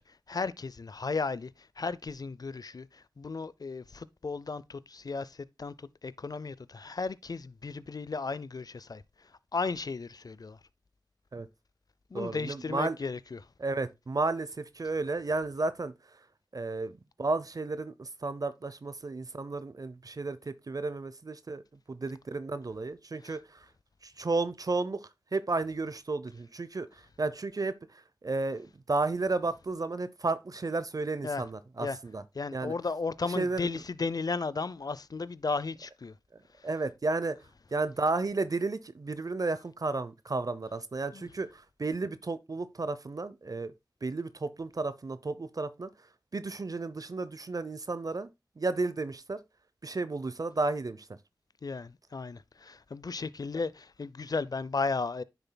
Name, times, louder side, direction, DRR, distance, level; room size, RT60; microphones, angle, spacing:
voice 1, 0.0-10.6 12.1-13.4 23.2-23.4 31.2-31.4 31.8-32.0 32.3-36.1 36.6-36.7 41.1-41.3 51.6-55.2, left 4 dB, 60° left, 0.5 m, -35 dB
voice 2, 12.1-13.0 13.6-16.2 16.5-21.6 21.9-23.7 24.0-32.2 32.5-32.7 33.3-33.8 36.6-37.4 37.7-43.7 44.0-45.9 46.3-48.3 48.6-49.4 49.8-51.1, right 3 dB, 55° right, 0.6 m, -33 dB
9.8 x 6.8 x 2.2 m
cardioid pair, 45°, 8 cm